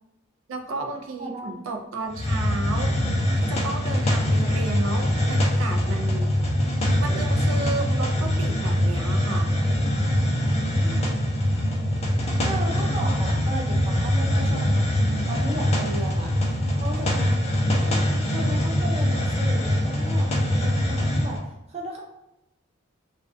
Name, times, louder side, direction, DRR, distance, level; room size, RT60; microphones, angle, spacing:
voice 1, 0.5-3.0 3.4-6.3 6.7-9.6 12.7-13.1, right 3 dB, 85° right, 4 dB, 0.4 m, -33 dB
voice 2, 1.2-1.6 10.8-11.1 12.4-17.4 17.8-22.0, right 1 dB, 35° right, -1 dB, 0.5 m, -36 dB
Hiss, 2.1-21.4, left 1 dB, 30° left, 0.4 m, -23 dB
2.3 x 2.2 x 2.5 m, 0.88 s
head